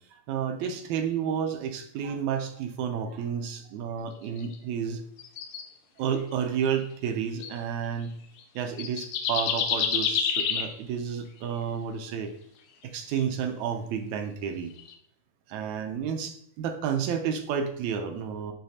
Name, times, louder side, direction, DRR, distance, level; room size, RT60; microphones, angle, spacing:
voice 1, 0.1-5.0 6.0-8.2 8.6-12.3 12.8-14.7 15.5-18.5, right 7 dB, 75° right, 6 dB, 1.8 m, -31 dB
sound 1, 4.4-4.6 5.2-5.6 6.6-6.8 7.4-7.6 8.4-8.5 8.8-10.7 12.9-13.2 14.7-14.9, left 7 dB, 80° left, 2.2 m, -28 dB
11.0 x 4.0 x 2.8 m, 0.67 s
omnidirectional pair, 3.8 m